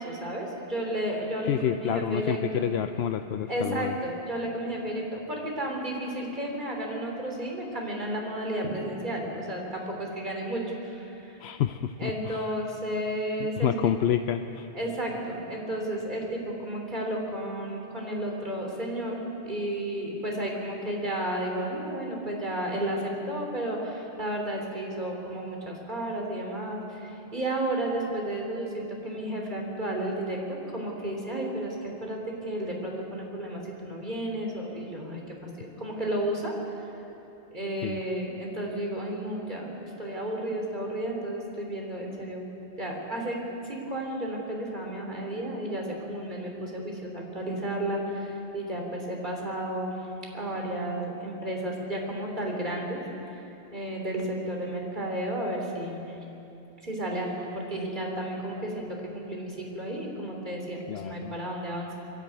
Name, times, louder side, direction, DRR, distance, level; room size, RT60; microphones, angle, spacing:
voice 1, 0.0-2.7 3.4-11.4 12.0-13.9 14.7-36.6 37.5-42.5 42.8-43.4 43.6-49.9 50.3-53.4 53.7-56.2 56.8-58.9 59.1-61.9, right 1 dB, 45° right, 0 dB, 3.6 m, -32 dB
voice 2, 1.4-3.9 11.4-12.4 13.6-14.7 37.8-38.0 60.9-61.3, left 9 dB, 75° left, 8 dB, 0.9 m, -28 dB
22.5 x 13.5 x 9.2 m, 2.9 s
omnidirectional pair, 1.1 m